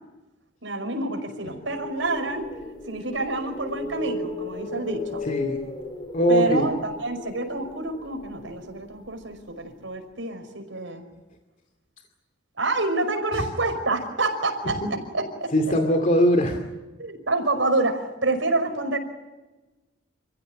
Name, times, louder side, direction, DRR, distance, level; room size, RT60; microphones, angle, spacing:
voice 1, 0.6-2.5 2.9-5.2 6.3-11.0 12.6-14.8 15.1-15.5 17.0-19.0, right 2 dB, 85° right, 6 dB, 5.4 m, -27 dB
sound 1, 1.5-9.6, left 2 dB, 25° left, 4.7 m, -37 dB
voice 2, 5.2-5.6 6.1-6.7 13.3-13.4 15.5-16.6, equal, 45° left, 4 dB, 2.5 m, -21 dB
29.0 x 15.5 x 9.6 m, 1.1 s
head